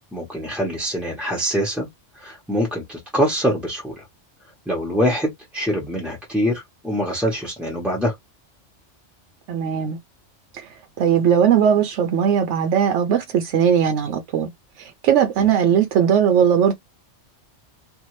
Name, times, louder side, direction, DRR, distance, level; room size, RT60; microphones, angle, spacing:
voice 1, 0.1-1.9 2.1-4.0 4.7-8.1, equal, ahead, 0.8 m, -24 dB
voice 2, 9.5-10.0 10.5-10.7 11.0-14.5 14.8-16.8, right 8 dB, 80° right, 0.9 m, -19 dB
2.7 x 2.4 x 3.0 m
omnidirectional pair, 1.2 m